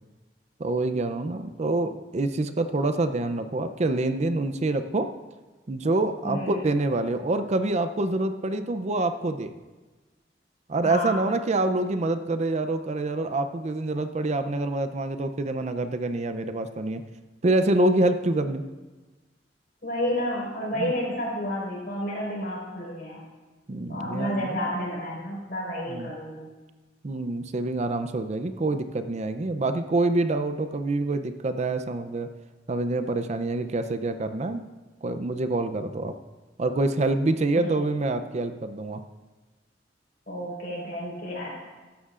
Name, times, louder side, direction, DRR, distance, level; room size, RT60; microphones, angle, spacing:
voice 1, 0.6-5.1 5.7-9.5 10.7-17.0 17.4-18.6 20.8-20.9 23.7-24.6 25.9-26.1 27.0-32.3 32.7-34.6 35.0-36.1 36.6-39.0, right 2 dB, 40° right, 9 dB, 0.5 m, -26 dB
voice 2, 6.2-6.6 10.8-11.3 19.8-23.2 23.9-26.5 37.6-37.8 40.3-41.5, equal, 60° left, -4 dB, 4.5 m, -31 dB
16.0 x 13.0 x 2.5 m, 1.2 s
head